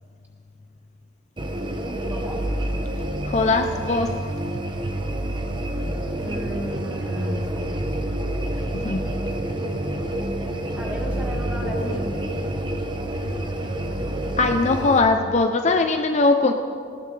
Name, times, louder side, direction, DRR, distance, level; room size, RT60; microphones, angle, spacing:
sound 1, 1.4-15.0, equal, 25° right, 0.9 m, -28 dB
sound 2, 1.8-15.5, right 5 dB, 65° right, 0.5 m, -37 dB
voice 1, 2.1-2.4 6.2-7.8 10.8-12.1, equal, 10° right, -1 dB, 1.8 m, -34 dB
voice 2, 3.2-4.2 8.7-9.0 14.4-16.5, left 3 dB, 40° left, 6 dB, 0.5 m, -20 dB
18.5 x 16.0 x 3.3 m, 2.3 s
head